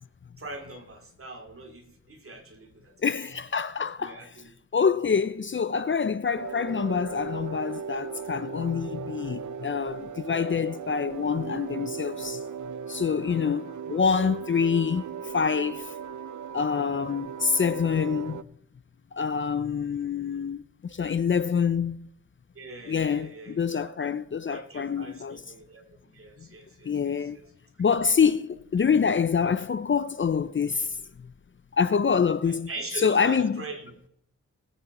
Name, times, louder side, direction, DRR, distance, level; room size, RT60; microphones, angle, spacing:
voice 1, 0.4-2.9 4.0-4.5 22.5-24.0 24.4-27.4 32.5-33.9, right 2 dB, 50° right, 2.6 m, -42 dB
voice 2, 3.0-4.3 4.7-12.4 12.9-15.0 15.3-15.9 16.5-18.4 19.1-22.1 22.9-25.4 26.8-27.4 27.8-31.0 31.7-32.7 33.0-33.6, left 6 dB, 40° left, 0.5 m, -26 dB
sound 1, 6.3-18.4, right 7 dB, 80° right, 0.5 m, -37 dB
19.0 x 8.3 x 4.2 m
wide cardioid pair, 95°, 29 cm